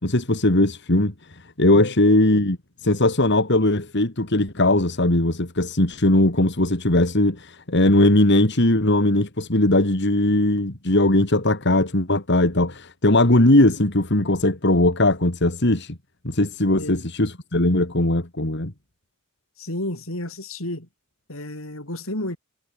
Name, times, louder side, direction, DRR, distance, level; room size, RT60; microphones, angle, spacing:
voice 1, 0.0-16.0 16.2-18.7, left 1 dB, 55° left, 2.9 m, -19 dB
voice 2, 19.6-20.9 21.3-22.4, left 1 dB, 75° left, 7.6 m, -31 dB
head